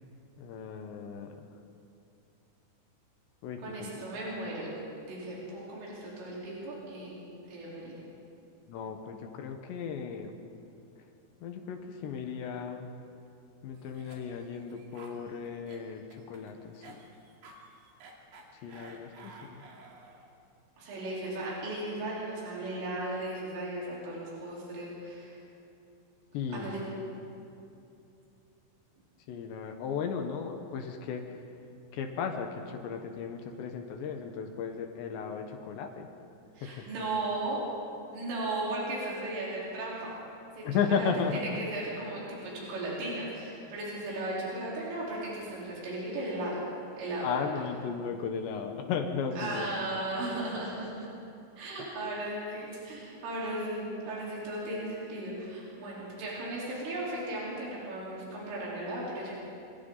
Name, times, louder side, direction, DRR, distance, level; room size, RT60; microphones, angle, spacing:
voice 1, 0.4-1.5 3.4-4.4 8.7-10.4 11.4-12.9 13.6-17.0 18.6-19.6 26.3-26.8 29.3-31.5 31.9-36.1 36.6-36.9 40.6-41.4 47.2-49.7, left 6 dB, 70° left, 4 dB, 3.2 m, -35 dB
voice 2, 3.6-4.7 5.1-7.2 7.5-7.9 20.8-25.4 26.5-26.8 36.6-37.6 38.1-40.1 40.6-46.6 47.0-47.7 49.4-51.1 51.6-59.4, right 1 dB, 90° right, -6 dB, 6.7 m, -36 dB
Cough, 13.8-20.3, right 3 dB, 65° right, 4.4 m, -53 dB
26.5 x 25.5 x 4.0 m, 2.7 s
omnidirectional pair, 5.6 m